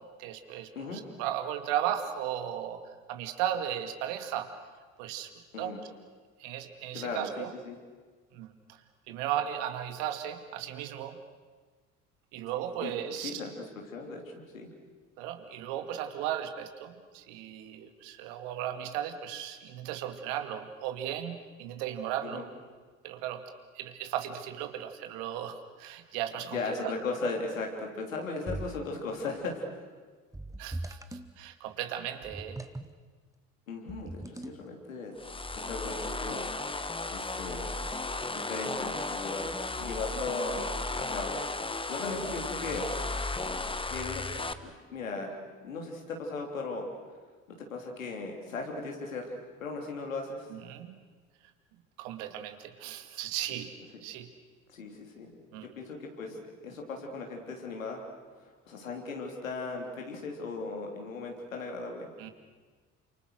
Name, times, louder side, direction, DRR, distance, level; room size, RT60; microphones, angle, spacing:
voice 1, 0.2-2.8 3.1-4.5 5.0-5.7 6.4-7.5 8.3-11.2 12.3-13.4 15.2-22.5 23.0-23.4 23.7-26.6 26.8-26.9 30.6-32.6 50.5-51.0 52.0-53.8 54.0-54.3 55.5-55.7 62.2-62.3, right 11 dB, 65° right, 8 dB, 2.2 m, -36 dB
voice 2, 6.9-7.8 12.8-14.7 22.2-22.4 26.5-29.8 33.7-35.1 35.5-36.5 37.1-37.7 38.3-39.5 39.8-42.9 43.9-44.3 44.6-46.9 47.5-50.6 54.7-55.3 55.6-58.0 58.4-62.1, left 3 dB, 80° left, 1 dB, 3.4 m, -37 dB
sound 1, 28.5-29.0 30.3-31.3 32.2-32.9 33.9-34.7, right 2 dB, 10° right, 1.5 m, -40 dB
sound 2, 35.2-44.5, left 3 dB, 15° left, 1.4 m, -35 dB
29.5 x 27.0 x 6.4 m, 1.4 s
figure-of-eight pair, 55°, 39 cm